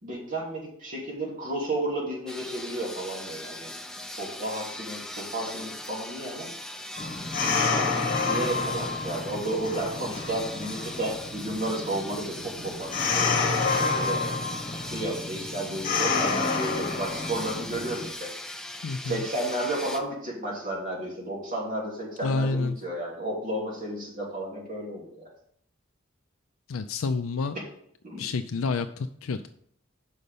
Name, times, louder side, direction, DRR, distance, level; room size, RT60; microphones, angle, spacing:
voice 1, 0.0-3.7 4.2-6.5 7.5-14.2 14.7-18.3 19.0-25.3 28.0-28.3, right 1 dB, 40° right, -3 dB, 3.0 m, -33 dB
sound 1, 2.3-20.0, left 1 dB, 5° left, 0.7 m, -40 dB
sound 2, 7.0-18.1, left 4 dB, 40° left, 1.3 m, -29 dB
voice 2, 18.8-19.3 22.2-22.8 26.7-27.6 28.2-29.5, left 3 dB, 75° left, 8 dB, 0.4 m, -29 dB
6.4 x 5.4 x 6.7 m, 0.66 s
head